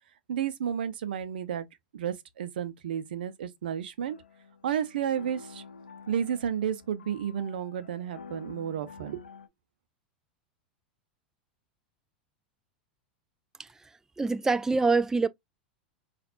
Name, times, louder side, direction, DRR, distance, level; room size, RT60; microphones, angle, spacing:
voice 1, 0.3-1.7 1.9-4.2 4.6-5.6 6.1-9.2, right 9 dB, 70° right, 0.6 m, -32 dB
sound 1, 4.0-9.5, left 5 dB, 85° left, 0.7 m, -49 dB
voice 2, 14.2-15.3, right 4 dB, 10° right, 0.4 m, -25 dB
5.8 x 2.5 x 2.5 m
hypercardioid pair, 90°, 5 cm